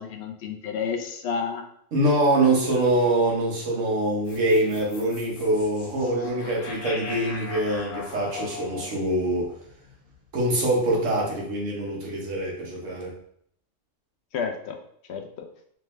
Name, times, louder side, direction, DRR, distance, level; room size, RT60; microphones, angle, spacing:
voice 1, 0.0-1.6 14.3-14.8 15.1-15.3, left 6 dB, 65° left, 4 dB, 0.8 m, -30 dB
voice 2, 1.9-9.5 10.3-13.1, right 1 dB, 90° right, -2 dB, 1.4 m, -24 dB
sound 1, 4.3-10.6, left 3 dB, 85° left, 1.1 m, -39 dB
3.3 x 3.3 x 3.1 m, 0.67 s
omnidirectional pair, 1.3 m